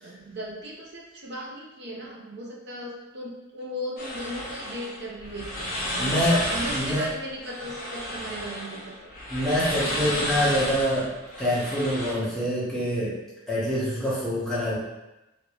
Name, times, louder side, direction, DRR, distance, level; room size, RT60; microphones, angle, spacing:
voice 1, 0.0-6.2 6.5-9.1, equal, 50° right, -2 dB, 0.6 m, -37 dB
sound 1, 4.0-12.1, equal, 40° left, 0.7 m, -32 dB
voice 2, 6.0-6.5 6.7-7.0 9.3-11.1 11.4-13.1 13.5-14.7, equal, ahead, -10 dB, 1.0 m, -25 dB
2.9 x 2.7 x 3.0 m, 0.99 s
head